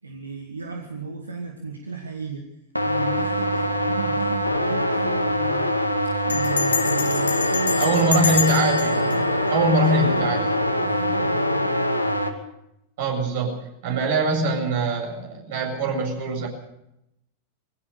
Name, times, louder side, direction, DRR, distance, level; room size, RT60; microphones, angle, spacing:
voice 1, 0.0-2.5 2.8-5.7 6.0-8.6 9.0-9.4 9.7-10.3 10.8-11.6, right 5 dB, 75° right, 3 dB, 2.1 m, -34 dB
sound 1, 2.8-12.3, left 1 dB, 90° left, 2.1 m, -23 dB
Bell, 4.2-4.5 4.8-4.9 5.1-5.5 6.3-10.4, left 5 dB, 70° left, 1.9 m, -28 dB
voice 2, 7.8-9.2 9.5-10.4 13.0-16.5, right 2 dB, 55° right, 3 dB, 7.6 m, -23 dB
23.0 x 17.0 x 6.9 m, 0.84 s
figure-of-eight pair, 90°, 0 cm